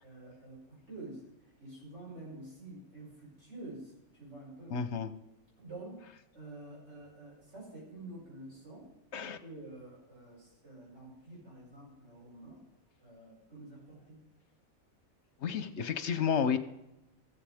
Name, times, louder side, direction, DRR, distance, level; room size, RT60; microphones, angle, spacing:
voice 1, 0.0-4.8 5.6-6.0 6.3-8.9 9.4-12.6 13.0-14.3, right 2 dB, 55° right, -6 dB, 6.2 m, -48 dB
voice 2, 4.7-5.1 9.1-9.4 15.4-16.6, left 7 dB, 55° left, 11 dB, 1.1 m, -31 dB
15.0 x 15.0 x 3.6 m, 0.90 s
omnidirectional pair, 1.5 m